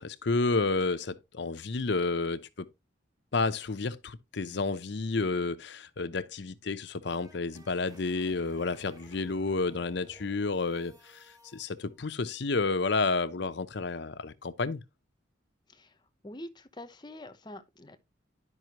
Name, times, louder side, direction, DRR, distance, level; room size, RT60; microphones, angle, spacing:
voice 1, 0.0-2.7 3.3-11.2 11.5-14.8, left 3 dB, 65° left, 0.7 m, -30 dB
sound 1, 6.7-11.6, right 1 dB, 20° right, 1.0 m, -56 dB
voice 2, 15.7-16.0 16.2-18.0, left 1 dB, 25° left, 0.8 m, -45 dB
11.0 x 5.5 x 2.9 m
head